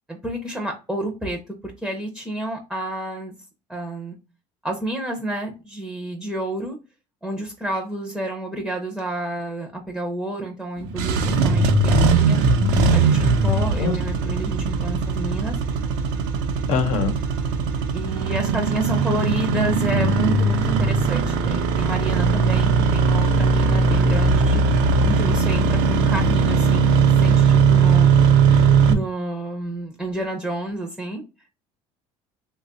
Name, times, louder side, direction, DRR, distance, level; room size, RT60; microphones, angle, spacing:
voice 1, 0.1-3.3 3.7-4.2 4.6-6.8 7.2-12.4 12.9-15.6 17.9-24.6 25.0-28.1 28.9-31.2, right 1 dB, ahead, 2 dB, 0.5 m, -30 dB
Engine starting, 10.8-28.9, right 4 dB, 90° right, 0.6 m, -19 dB
voice 2, 12.6-13.2 13.8-14.0 16.7-17.1, left 4 dB, 85° left, 8 dB, 0.8 m, -24 dB
3.1 x 2.2 x 3.8 m, 0.30 s
cardioid pair, 140°, 12 cm